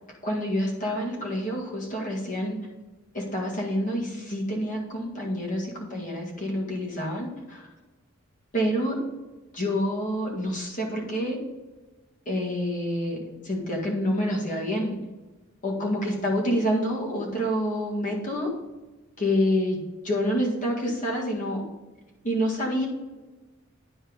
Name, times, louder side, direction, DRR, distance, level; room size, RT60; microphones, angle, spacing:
voice 1, 0.2-2.6 3.1-7.6 8.5-9.0 9.5-11.4 12.3-13.2 13.4-15.0 15.6-18.5 19.2-21.6 22.2-22.9, equal, 35° left, -2 dB, 1.9 m, -27 dB
10.0 x 4.4 x 5.0 m, 1.2 s
head